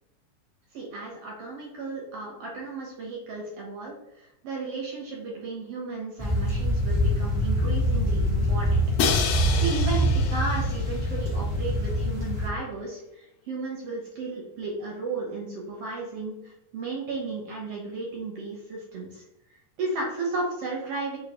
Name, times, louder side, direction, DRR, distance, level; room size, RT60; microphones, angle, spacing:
voice 1, 0.7-8.8 9.3-19.2 19.8-21.2, right 3 dB, 65° right, -3 dB, 1.9 m, -34 dB
sound 1, 6.2-12.5, equal, 15° right, 1.1 m, -25 dB
Crash cymbal, 9.0-11.0, left 6 dB, 80° left, 2.0 m, -29 dB
4.7 x 3.8 x 3.0 m, 0.86 s
omnidirectional pair, 3.3 m